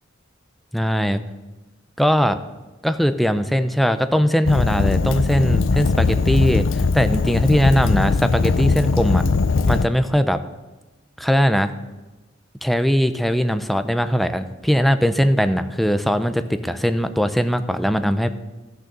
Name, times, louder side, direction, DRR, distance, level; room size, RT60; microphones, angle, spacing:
voice 1, 0.7-1.2 2.0-2.4 2.8-9.2 9.7-10.4 11.2-11.7 12.6-18.3, equal, ahead, 10 dB, 0.5 m, -20 dB
Fire, 4.5-9.9, left 4 dB, 80° left, 0.5 m, -20 dB
13.0 x 6.4 x 6.8 m, 1.1 s
head